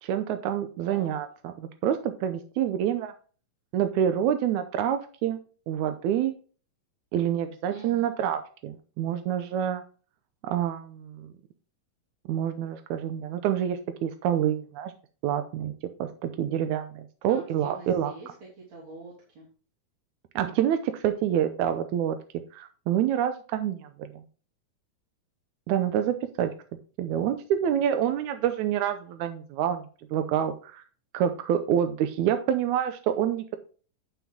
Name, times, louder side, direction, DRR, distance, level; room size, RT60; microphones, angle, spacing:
voice 1, 0.0-3.1 3.7-5.4 5.7-6.4 7.1-9.8 10.4-11.3 12.3-14.9 15.2-15.7 16.0-18.1 20.4-22.2 22.5-24.2 25.7-26.5 27.0-30.8 31.1-33.6, right 10 dB, 90° right, 8 dB, 2.1 m, -27 dB
voice 2, 0.8-1.2 7.7-8.1 17.3-19.5, right 3 dB, 65° right, -6 dB, 4.3 m, -45 dB
11.5 x 5.9 x 3.7 m, 0.38 s
omnidirectional pair, 3.3 m